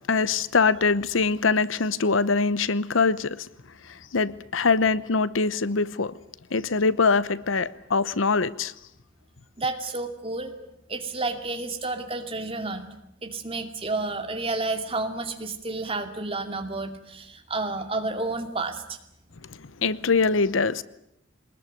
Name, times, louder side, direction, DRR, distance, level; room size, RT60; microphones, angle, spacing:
voice 1, 0.1-3.5 4.1-6.1 6.5-8.7 19.8-20.8, left 4 dB, 85° left, 0.9 m, -23 dB
voice 2, 9.6-10.6 10.9-12.9 13.2-19.0, right 3 dB, 30° right, 2.4 m, -30 dB
22.5 x 20.5 x 9.4 m
head